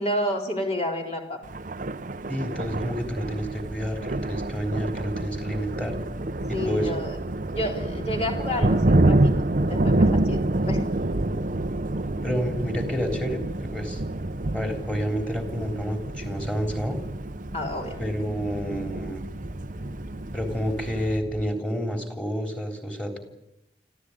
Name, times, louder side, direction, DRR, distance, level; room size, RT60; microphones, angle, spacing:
voice 1, 0.0-1.4 6.5-7.2 7.5-11.0 17.5-18.6, left 1 dB, 35° left, 2 dB, 4.0 m, -30 dB
Thunder, 1.4-21.2, right 2 dB, 45° right, 0.9 m, -27 dB
voice 2, 2.3-6.0 6.5-6.9 12.2-14.0 14.5-17.0 18.0-19.3 20.3-23.2, equal, 5° left, 4 dB, 3.7 m, -29 dB
sound 1, 2.6-21.5, equal, 15° right, 2.1 m, -41 dB
25.5 x 15.0 x 9.8 m, 0.90 s
head